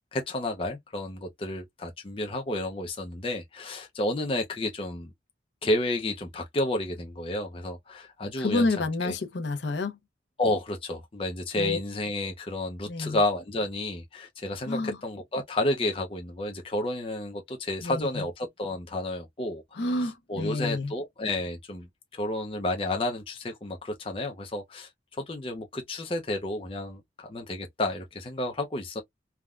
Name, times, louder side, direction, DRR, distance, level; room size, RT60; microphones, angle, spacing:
voice 1, 0.1-5.1 5.6-8.7 9.0-9.1 10.4-19.9 20.3-24.9 25.3-29.0, left 1 dB, 30° left, 0.5 m, -31 dB
voice 2, 8.4-10.0 11.6-11.8 12.9-13.2 14.7-15.0 17.8-18.2 19.7-20.9, left 2 dB, 75° left, 0.6 m, -29 dB
3.5 x 2.1 x 2.3 m
head